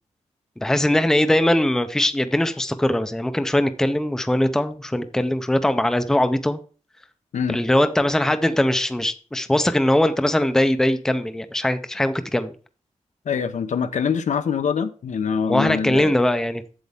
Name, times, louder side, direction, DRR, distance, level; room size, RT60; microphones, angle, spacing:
voice 1, 0.6-6.6 7.5-12.5 15.5-16.6, left 1 dB, 5° left, 10 dB, 0.5 m, -21 dB
voice 2, 13.3-16.1, left 6 dB, 80° left, 10 dB, 0.8 m, -24 dB
8.0 x 7.3 x 3.5 m, 0.38 s
wide cardioid pair, 170°, 12 cm